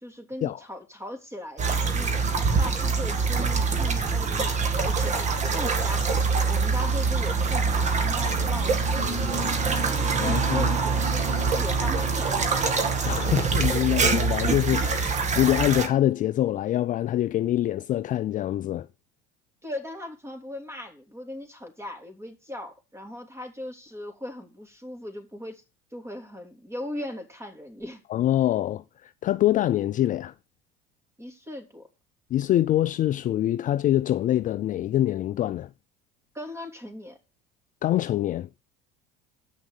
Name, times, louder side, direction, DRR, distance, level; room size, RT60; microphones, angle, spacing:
voice 1, 0.0-9.9 10.2-12.8 19.6-25.6 25.9-28.0 31.2-31.9 36.3-37.2, left 1 dB, 15° right, 3.1 m, -38 dB
sound 1, 1.6-15.9, right 4 dB, 35° right, 1.9 m, -24 dB
voice 2, 10.2-10.7 13.1-18.9 28.1-30.3 32.3-35.7 37.8-38.5, left 13 dB, 40° left, 0.5 m, -25 dB
8.3 x 6.2 x 6.8 m
hypercardioid pair, 85°, 20 cm